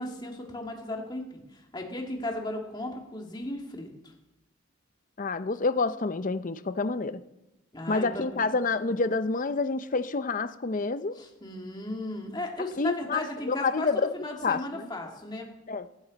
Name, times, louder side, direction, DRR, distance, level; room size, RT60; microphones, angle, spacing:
voice 1, 0.0-3.9 7.7-8.5 8.8-8.9 11.2-15.5, left 1 dB, 20° left, 1 dB, 2.2 m, -36 dB
voice 2, 5.2-7.2 7.9-11.2 12.8-14.1 14.4-14.9 15.7-15.9, left 4 dB, 40° left, 12 dB, 0.6 m, -28 dB
16.0 x 14.0 x 4.1 m, 0.94 s
head